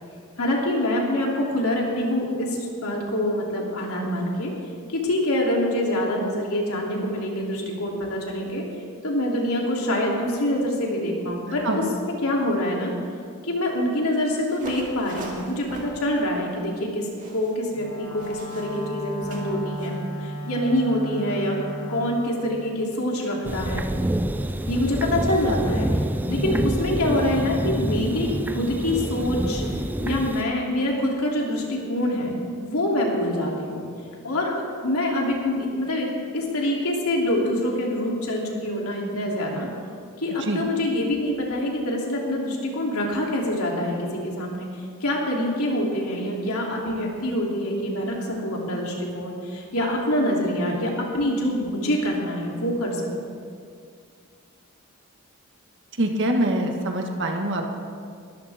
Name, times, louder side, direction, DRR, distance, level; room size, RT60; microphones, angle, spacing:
voice 1, 0.4-4.5 4.9-8.6 9.0-12.9 13.4-21.6 21.9-23.8 24.6-25.9 26.3-29.6 30.0-33.8 34.2-39.7 40.2-44.7 45.0-53.3, left 1 dB, 75° left, -2 dB, 3.1 m, -25 dB
sound 1, 14.5-20.0, right 1 dB, 35° right, 2.5 m, -42 dB
Wind instrument woodwind instrument, 17.7-22.2, right 1 dB, 25° left, 2.7 m, -34 dB
sound 2, 23.4-30.4, right 1 dB, 10° right, 0.4 m, -27 dB
voice 2, 56.0-57.7, right 1 dB, 55° right, 2 dB, 1.6 m, -24 dB
22.0 x 14.0 x 3.6 m, 2.2 s
head